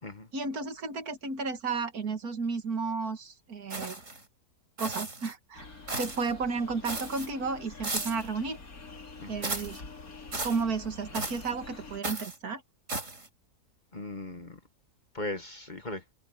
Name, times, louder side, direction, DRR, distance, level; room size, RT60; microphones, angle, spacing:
voice 1, 0.3-4.0 4.8-5.7 6.0-8.6 9.3-9.8 10.4-12.6, right 4 dB, 70° right, 2.3 m, -33 dB
sound 1, 3.7-4.2 4.8-5.3 5.9-6.3 6.8-7.3 7.8-8.3 9.4-9.8 10.3-10.6 11.1-11.5 12.0-12.4 12.9-13.3, right 2 dB, 50° right, 4.3 m, -35 dB
sound 2, 5.5-12.0, left 3 dB, 65° left, 3.5 m, -46 dB
voice 2, 13.9-14.6 15.1-16.0, left 2 dB, 30° left, 1.4 m, -38 dB
omnidirectional pair, 1.6 m